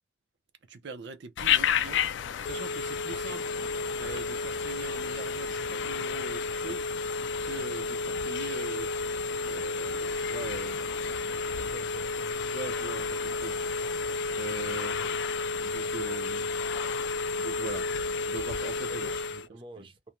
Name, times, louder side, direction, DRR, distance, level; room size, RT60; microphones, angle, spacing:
voice 1, 0.7-2.0 2.4-3.4 4.0-6.9 7.4-8.9 9.5-11.3 12.5-13.5 14.3-15.2 15.6-16.6 17.4-17.9 18.3-19.1, right 4 dB, 75° right, 0.5 m, -42 dB
Telephone, 1.4-19.5, left 4 dB, 85° left, 0.3 m, -31 dB
sound 1, 3.3-15.4, left 3 dB, 25° left, 0.5 m, -50 dB
voice 2, 11.4-12.6 14.7-14.8 18.9-20.1, right 1 dB, 30° right, 0.6 m, -49 dB
2.5 x 2.1 x 2.9 m
head